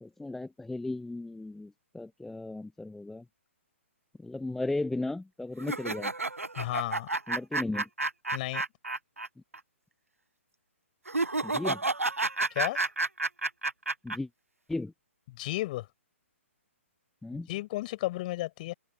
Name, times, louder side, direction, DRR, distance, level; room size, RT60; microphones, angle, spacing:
voice 1, 0.0-3.3 4.2-6.1 7.3-7.9 11.4-11.8 14.0-14.3 14.7-14.9 17.2-17.5, left 2 dB, 5° left, 0.6 m, -35 dB
sound 1, 5.6-9.3 9.5-9.6 11.1-14.2, right 2 dB, 85° right, 0.8 m, -30 dB
voice 2, 6.6-7.1 8.3-8.6 12.5-12.8 15.3-15.9 17.3-18.7, left 17 dB, 35° left, 6.3 m, -33 dB
figure-of-eight pair, 130°, 7 cm